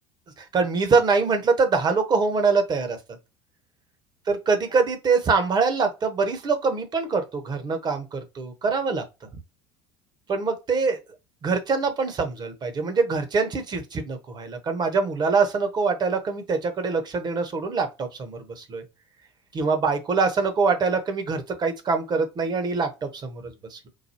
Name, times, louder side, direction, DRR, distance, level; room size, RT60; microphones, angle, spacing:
voice 1, 0.4-3.0 4.3-9.0 10.3-11.0 11.4-18.8 19.5-23.9, right 4 dB, 30° right, 1.0 m, -24 dB
4.8 x 2.2 x 2.8 m
figure-of-eight pair, 65°, 14 cm